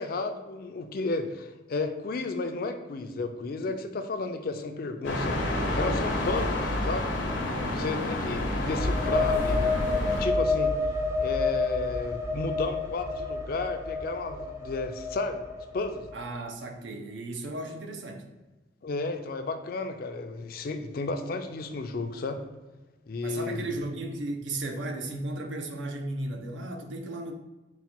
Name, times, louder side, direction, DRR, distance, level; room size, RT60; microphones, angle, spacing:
voice 1, 0.0-7.1 7.7-10.7 11.2-15.5 15.7-16.1 18.8-22.4 23.1-23.7, left 3 dB, 50° left, 7 dB, 0.4 m, -33 dB
sound 1, 5.0-10.3, left 1 dB, 80° left, 0.8 m, -29 dB
sound 2, 8.7-16.3, left 3 dB, 15° right, 0.4 m, -29 dB
voice 2, 16.1-18.3 23.2-27.3, right 2 dB, 80° right, 4 dB, 0.6 m, -35 dB
4.1 x 2.2 x 4.2 m, 1.1 s
head